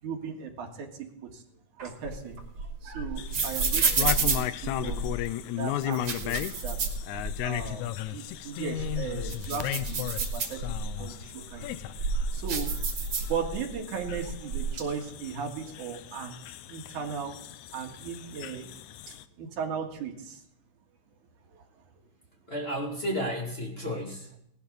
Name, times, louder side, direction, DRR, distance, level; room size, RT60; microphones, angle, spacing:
voice 1, 0.0-1.4 1.8-5.1 5.6-6.9 7.4-12.7 13.3-16.3 16.7-17.4 17.7-20.4 21.5-21.6, right 6 dB, 90° right, 2 dB, 3.2 m, -37 dB
sound 1, 1.8-5.2 5.8-7.6 8.0-8.1 8.6-11.0 11.6-13.7 14.0-14.8, right 4 dB, 50° right, 2.8 m, -30 dB
sound 2, 3.2-19.2, left 13 dB, 85° left, 2.0 m, -36 dB
voice 2, 22.5-24.4, equal, 20° left, -1 dB, 2.3 m, -32 dB
18.5 x 11.5 x 4.0 m, 0.78 s
omnidirectional pair, 3.4 m